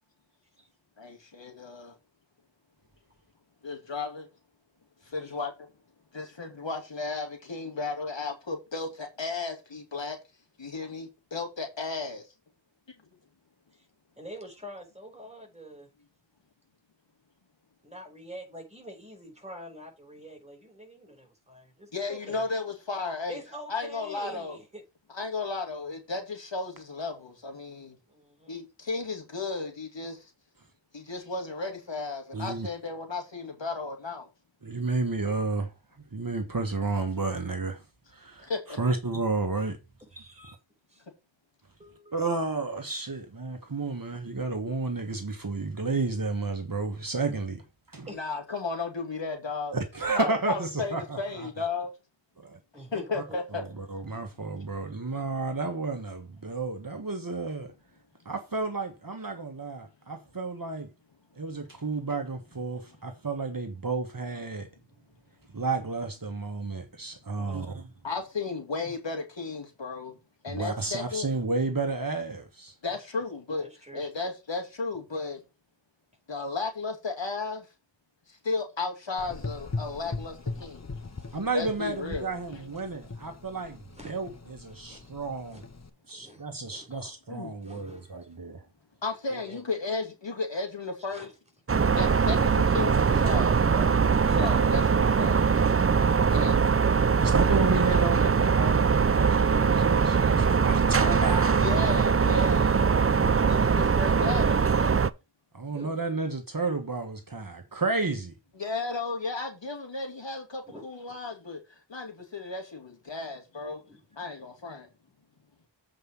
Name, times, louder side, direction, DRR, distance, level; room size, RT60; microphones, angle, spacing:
voice 1, 1.0-2.0 3.6-4.3 5.0-5.5 6.1-10.2 10.6-12.2 21.9-23.4 23.7-24.6 25.1-28.0 28.5-30.3 30.9-34.3 38.4-38.8 48.1-49.7 50.1-51.9 52.9-53.6 68.0-70.2 70.4-71.3 72.8-73.7 73.9-75.4 76.3-77.7 78.3-80.8 81.5-82.3 86.9-87.5 89.0-91.3 92.0-93.9 94.3-95.4 96.3-96.9 97.2-97.3 97.7-97.8 101.6-103.2 103.4-105.1 108.6-111.6 111.9-113.8 114.1-114.9, left 3 dB, 70° left, 2.6 m, -34 dB
voice 2, 14.2-15.8 17.8-22.5 23.3-24.8 28.1-28.6 40.1-40.6 40.9-41.1 41.8-42.2 48.1-48.4 52.7-53.4 67.3-67.7 72.8-73.0 73.6-74.0 75.1-75.2 76.5-76.6 80.4-81.4 83.9-84.2 84.9-85.1 85.5-85.6 86.1-86.9 87.6-88.3 89.3-89.6 91.1-91.3 102.7-102.8 105.7-106.0 110.7-111.2 113.8-114.0, equal, 15° right, 5.1 m, -47 dB
voice 3, 32.3-32.7 34.6-35.7 36.1-37.8 38.1-39.8 40.2-40.5 42.1-47.6 47.9-48.1 49.7-51.7 53.1-53.2 53.5-57.7 58.2-60.9 61.3-64.7 65.5-67.9 70.5-72.7 81.3-85.6 86.1-88.6 96.3-96.6 96.9-101.7 105.5-108.3, right 3 dB, 45° right, 1.5 m, -31 dB
Gurgling / Engine, 79.2-85.9, left 3 dB, 35° left, 1.1 m, -40 dB
sound 1, 91.7-105.1, right 5 dB, 30° right, 0.5 m, -22 dB
7.9 x 5.1 x 5.5 m
wide cardioid pair, 55°, 46 cm